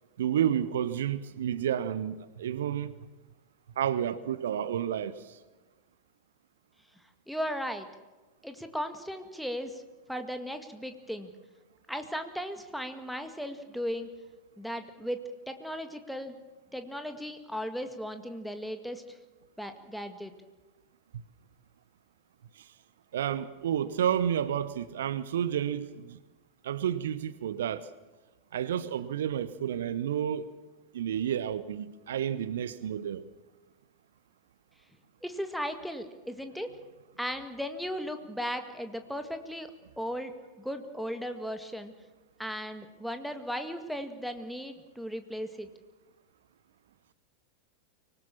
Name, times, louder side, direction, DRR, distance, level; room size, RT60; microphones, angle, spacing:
voice 1, 0.2-3.0 3.8-5.4 21.1-21.2 22.6-22.7 23.1-26.2 26.6-27.9 28.5-30.5 30.9-33.2, right 9 dB, 60° right, 0.8 m, -30 dB
voice 2, 7.3-7.9 8.4-9.8 10.1-11.3 11.9-14.1 14.6-16.4 16.7-19.2 19.6-20.3 35.2-36.7 37.2-40.3 40.6-41.9 42.4-45.7, equal, ahead, 1.9 m, -36 dB
24.5 x 19.5 x 7.2 m
figure-of-eight pair, 90°, 0 cm